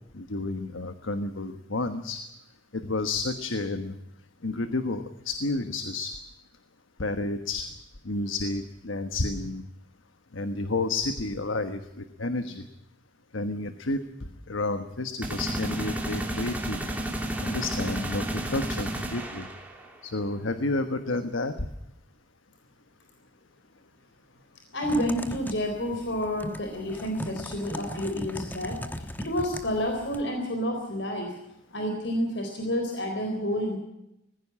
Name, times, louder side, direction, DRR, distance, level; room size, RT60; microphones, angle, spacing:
voice 1, 0.1-2.2 2.7-4.0 4.4-6.1 7.0-7.7 8.0-9.6 10.3-12.6 13.3-14.0 14.5-16.8 17.4-19.5 20.0-21.6, left 2 dB, 90° left, 9 dB, 1.3 m, -30 dB
sound 1, 15.2-20.0, right 1 dB, 10° right, 2.9 m, -32 dB
voice 2, 24.7-31.4 31.7-33.8, equal, 65° left, 4 dB, 3.9 m, -29 dB
Typing, 24.8-30.2, left 1 dB, 10° left, 1.1 m, -39 dB
20.0 x 15.5 x 8.6 m, 0.86 s
head